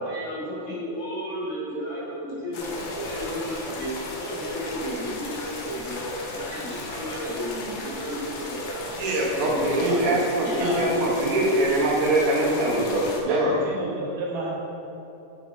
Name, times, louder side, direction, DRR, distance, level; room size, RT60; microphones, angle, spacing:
voice 1, 0.0-8.8 9.4-10.7, equal, 55° left, -8 dB, 2.5 m, -33 dB
sound 1, 2.5-13.2, left 2 dB, 85° left, 1.2 m, -36 dB
voice 2, 9.0-13.5, right 1 dB, 75° right, -4 dB, 2.4 m, -23 dB
voice 3, 10.6-10.9 13.3-14.6, right 1 dB, 90° right, -4 dB, 2.7 m, -31 dB
8.2 x 5.7 x 2.6 m, 3.0 s
omnidirectional pair, 3.6 m